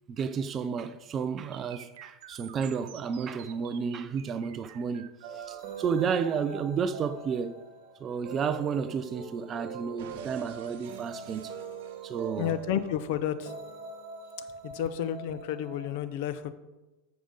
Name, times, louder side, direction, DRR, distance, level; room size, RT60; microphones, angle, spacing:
voice 1, 0.1-7.6 8.0-11.5 12.0-12.5, right 6 dB, 25° right, 0.4 m, -32 dB
sound 1, 1.5-9.5 10.0-12.5, right 9 dB, 70° right, 0.9 m, -52 dB
sound 2, 5.2-16.0, right 5 dB, 55° right, 1.5 m, -43 dB
voice 2, 12.4-13.5 14.6-16.5, left 10 dB, 55° left, 0.6 m, -31 dB
13.5 x 5.0 x 3.9 m
supercardioid pair, 165°, 0 cm